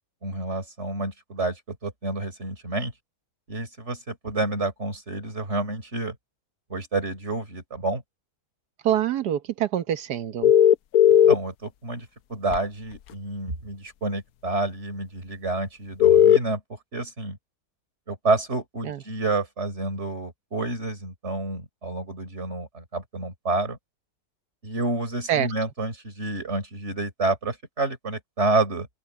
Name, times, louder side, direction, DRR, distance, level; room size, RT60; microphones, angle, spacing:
voice 1, 0.2-2.9 3.5-6.2 6.7-8.0 11.3-17.4 18.1-23.8 24.6-28.9, right 2 dB, 45° right, 4.3 m, -29 dB
voice 2, 8.8-10.5 18.8-19.0 25.3-25.5, right 10 dB, 85° right, 1.6 m, -25 dB
sound 1, 10.4-11.3 12.5-12.6 16.0-16.4, left 10 dB, 70° left, 1.1 m, -15 dB
open air
omnidirectional pair, 1.7 m